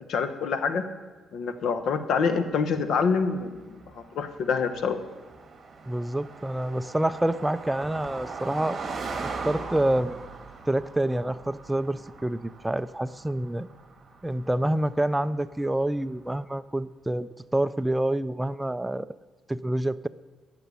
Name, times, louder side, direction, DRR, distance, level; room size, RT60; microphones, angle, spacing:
voice 1, 0.1-0.9 1.3-5.0, left 5 dB, 70° left, 9 dB, 1.1 m, -26 dB
Car passing by, 2.5-16.2, right 4 dB, 40° right, 1.8 m, -41 dB
voice 2, 5.9-8.8 9.2-10.3 10.7-13.7 14.2-19.1 19.5-20.1, right 1 dB, 10° right, 15 dB, 0.4 m, -27 dB
15.0 x 6.8 x 8.4 m, 1.3 s
cardioid pair, 90°, 0 cm